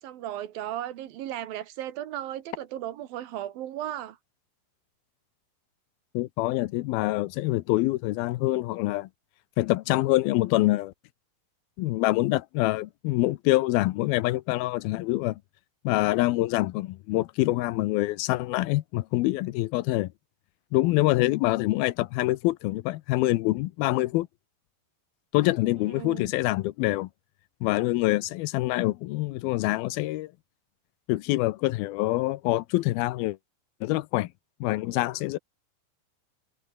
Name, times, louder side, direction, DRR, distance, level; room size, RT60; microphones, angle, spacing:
voice 1, 0.0-4.2 25.8-26.3, right 12 dB, 75° right, 3.1 m, -35 dB
voice 2, 6.1-9.1 9.6-10.9 11.8-15.4 15.8-20.1 20.7-24.3 25.3-27.1 27.6-30.3 31.1-33.4 33.8-34.3 34.6-35.4, left 18 dB, 80° left, 2.6 m, -25 dB
omnidirectional pair, 4.3 m